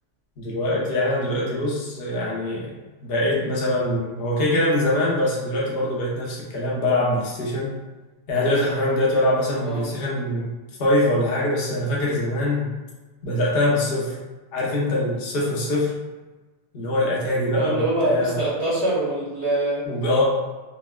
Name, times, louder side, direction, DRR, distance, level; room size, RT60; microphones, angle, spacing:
voice 1, 0.4-2.7 3.0-7.8 8.3-10.5 10.8-12.7 13.2-14.2 14.5-15.9 16.7-18.4 19.8-20.2, left 1 dB, 65° left, -4 dB, 0.5 m, -23 dB
voice 2, 9.5-9.9 17.5-19.9, right 1 dB, 50° right, -10 dB, 0.8 m, -24 dB
3.8 x 2.1 x 2.2 m, 1.2 s
omnidirectional pair, 1.9 m